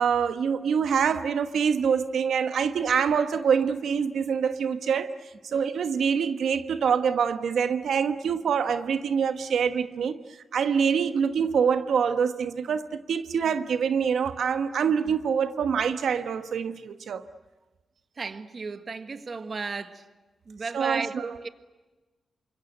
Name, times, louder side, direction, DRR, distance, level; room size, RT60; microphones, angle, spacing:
voice 1, 0.0-5.1 5.4-10.2 10.5-17.2 20.7-21.3, right 7 dB, 85° right, 1.2 m, -25 dB
voice 2, 18.2-20.0 20.5-21.5, right 4 dB, 40° right, 1.5 m, -34 dB
28.5 x 25.5 x 8.0 m
wide cardioid pair, 145°, 0 cm